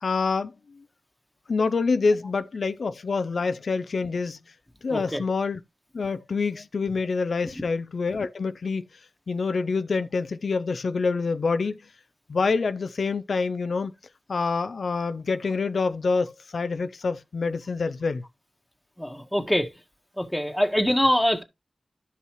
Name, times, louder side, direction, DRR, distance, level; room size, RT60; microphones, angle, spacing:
voice 1, 0.0-0.8 1.5-4.4 4.8-5.6 5.9-8.8 9.3-11.8 12.3-13.9 14.3-18.2, left 4 dB, 80° left, 0.4 m, -26 dB
voice 2, 4.9-5.2 19.0-19.7 20.2-21.4, equal, 5° left, 1.6 m, -24 dB
12.0 x 5.5 x 3.0 m
cardioid pair, 55°, 0 cm